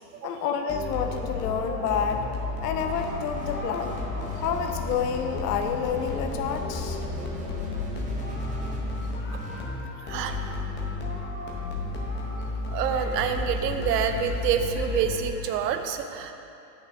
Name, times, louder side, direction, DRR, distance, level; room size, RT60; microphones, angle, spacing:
voice 1, 0.2-2.2 2.6-4.0 4.4-7.0, left 7 dB, 70° left, 6 dB, 0.7 m, -29 dB
sound 1, 0.7-15.6, left 3 dB, 20° left, 0.7 m, -32 dB
sound 2, 2.8-9.7, right 1 dB, 15° right, 0.8 m, -40 dB
voice 2, 10.0-10.4 12.7-16.3, right 8 dB, 70° right, 7 dB, 0.7 m, -27 dB
8.3 x 6.2 x 2.6 m, 2.7 s
supercardioid pair, 125°, 50 cm